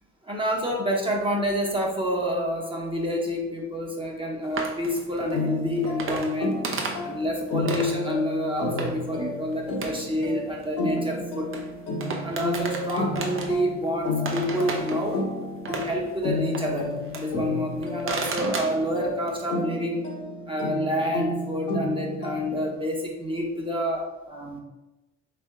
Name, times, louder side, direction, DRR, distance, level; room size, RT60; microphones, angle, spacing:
voice 1, 0.2-6.5 7.0-11.5 12.2-15.2 15.7-20.0 20.5-24.0 24.3-24.6, equal, 15° right, -2 dB, 0.9 m, -28 dB
sound 1, 4.5-8.1 8.8-9.2 9.5-11.7 12.0-13.9 14.2-17.4 17.7-19.3, right 4 dB, 45° right, 0.7 m, -34 dB
sound 2, 5.3-22.8, left 2 dB, 75° left, 1.0 m, -32 dB
3.5 x 3.4 x 3.5 m, 1.0 s
cardioid pair, 90°, 30 cm